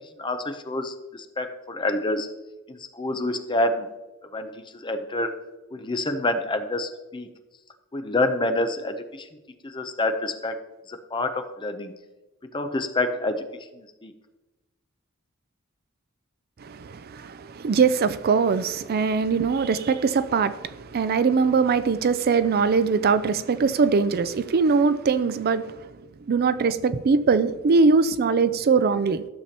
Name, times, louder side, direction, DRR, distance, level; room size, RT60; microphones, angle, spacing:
voice 1, 0.2-2.3 2.7-3.9 4.3-5.3 5.7-7.3 7.9-9.3 9.6-10.6 10.9-11.9 12.5-13.4 13.7-14.1, left 2 dB, 25° left, 0.6 m, -27 dB
voice 2, 16.6-25.8 26.3-29.3, right 5 dB, 45° right, 0.4 m, -22 dB
13.0 x 6.8 x 2.9 m
head